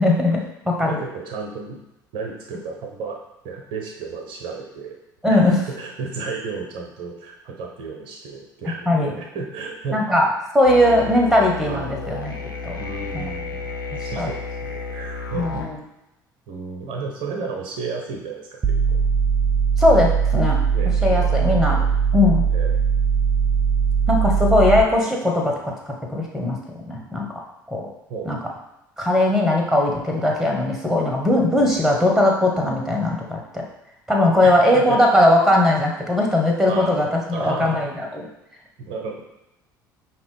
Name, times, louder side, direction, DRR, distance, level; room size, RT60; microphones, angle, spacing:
voice 1, 0.0-1.0 5.2-5.6 8.9-9.1 9.9-10.3 10.5-12.3 12.6-12.8 13.1-13.3 13.9-14.3 15.3-15.8 19.8-20.6 21.0-21.8 22.1-22.4 24.1-25.7 26.1-26.6 26.9-27.2 27.7-27.9 28.3-28.4 29.0-33.6 34.1-38.2, left 1 dB, 5° right, 0 dB, 1.1 m, -19 dB
voice 2, 0.8-1.8 2.1-3.2 3.4-5.0 5.3-10.0 11.7-11.9 12.8-13.7 14.0-15.6 16.5-19.0 20.7-21.4 21.7-21.9 22.5-22.8 28.1-28.3 31.6-31.8 34.4-34.5 34.9-35.0 36.7-36.9 37.3-37.8 38.8-39.2, right 4 dB, 50° right, 1 dB, 0.8 m, -33 dB
sound 1, 10.6-15.7, left 3 dB, 80° left, 0.6 m, -32 dB
sound 2, 18.6-24.8, right 6 dB, 25° right, 0.5 m, -20 dB
5.2 x 2.9 x 3.4 m, 0.91 s
figure-of-eight pair, 60°, 11 cm